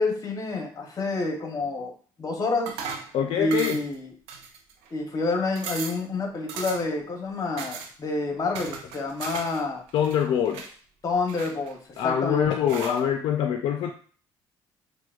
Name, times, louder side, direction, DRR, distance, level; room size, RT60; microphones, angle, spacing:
voice 1, 0.0-1.9 2.2-2.8 3.3-4.1 4.9-9.8 11.0-11.8 12.0-12.5, left 3 dB, 35° left, 3 dB, 0.9 m, -28 dB
sound 1, 2.7-3.1 3.5-4.0 4.3-4.9 5.2-5.3 5.6-6.0 6.5-7.0 7.6-7.9 8.5-9.6 9.9-10.7 11.3-12.0 12.7-13.0, right 6 dB, 90° right, 0.5 m, -37 dB
voice 2, 3.1-3.9 9.9-10.7 12.0-13.9, left 9 dB, 65° left, 4 dB, 0.4 m, -24 dB
4.3 x 2.1 x 2.4 m, 0.43 s
supercardioid pair, 80°, 10 cm